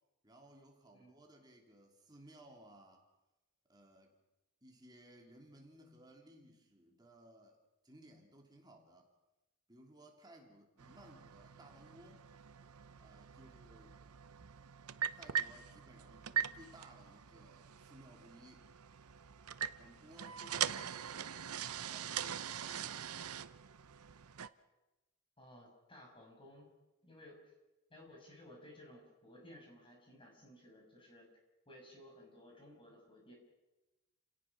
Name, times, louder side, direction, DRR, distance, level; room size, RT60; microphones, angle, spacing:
voice 1, 0.2-3.0 3.7-4.1 4.6-7.6 7.8-9.1 9.7-12.3 13.0-14.0 15.1-18.7 19.8-23.2, right 1 dB, 20° right, 1 dB, 3.1 m, -60 dB
sound 1, 10.8-24.5, right 9 dB, 90° right, 0.8 m, -42 dB
voice 2, 25.4-26.7 27.0-27.4 27.9-31.3 31.7-33.3, left 1 dB, 25° left, 0 dB, 6.2 m, -57 dB
30.0 x 18.0 x 6.1 m, 1.0 s
head